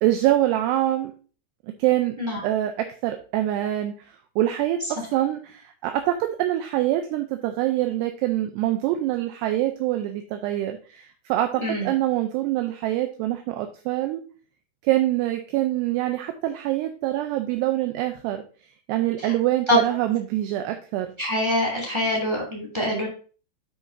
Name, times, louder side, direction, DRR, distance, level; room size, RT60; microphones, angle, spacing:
voice 1, 0.0-1.1 1.8-2.1 2.4-4.1 4.4-14.2 14.8-18.4 18.9-21.1, right 14 dB, 80° right, 6 dB, 2.5 m, -25 dB
voice 2, 21.2-23.1, equal, 10° right, -2 dB, 1.5 m, -24 dB
9.3 x 6.1 x 2.7 m, 0.38 s
omnidirectional pair, 5.3 m